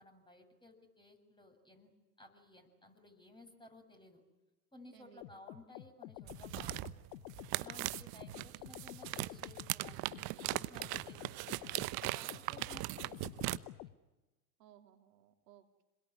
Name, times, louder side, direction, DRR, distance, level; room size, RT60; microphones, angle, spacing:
voice 1, 0.0-1.9 2.2-4.2 4.7-6.9 7.5-13.7, left 1 dB, 10° left, 4 dB, 6.9 m, -58 dB
voice 2, 4.9-5.3 7.6-8.0 12.8-13.0 14.6-15.8, right 11 dB, 75° right, 5 dB, 3.5 m, -61 dB
sound 1, 5.2-13.9, left 15 dB, 70° left, 1.1 m, -50 dB
sound 2, 6.3-13.6, right 20 dB, 50° right, 1.0 m, -39 dB
27.0 x 21.5 x 9.8 m, 1.1 s
hypercardioid pair, 90°, 49 cm